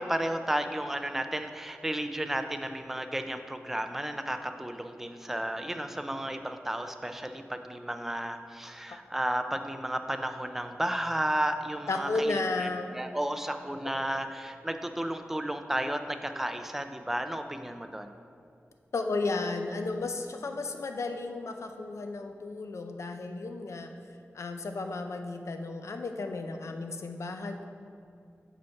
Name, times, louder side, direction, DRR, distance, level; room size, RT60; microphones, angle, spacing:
voice 1, 0.0-18.1, right 1 dB, 5° right, 7 dB, 0.3 m, -33 dB
voice 2, 11.9-12.9 13.8-13.9 18.9-23.9 24.3-27.6, left 3 dB, 80° left, 6 dB, 0.5 m, -33 dB
5.8 x 5.0 x 4.6 m, 2.3 s
wide cardioid pair, 90°, 5 cm